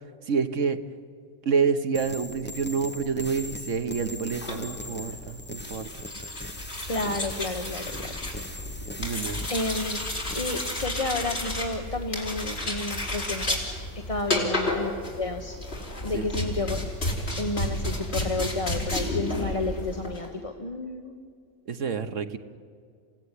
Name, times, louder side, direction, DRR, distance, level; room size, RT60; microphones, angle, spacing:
voice 1, 0.3-0.8 1.4-5.9 9.0-9.4 14.3-14.5 16.1-16.3 21.7-22.4, right 5 dB, 85° right, 9 dB, 1.6 m, -28 dB
sound 1, 1.9-10.9, left 1 dB, 10° left, 0.9 m, -40 dB
sound 2, 4.3-20.3, left 1 dB, 60° left, 4.5 m, -32 dB
voice 2, 6.9-8.1 8.5-9.0 9.5-10.0 10.3-13.6 13.9-15.6 16.0-16.8 17.4-21.2, left 2 dB, 30° left, 4 dB, 1.2 m, -31 dB
27.5 x 17.5 x 9.9 m, 2.2 s
omnidirectional pair, 1.3 m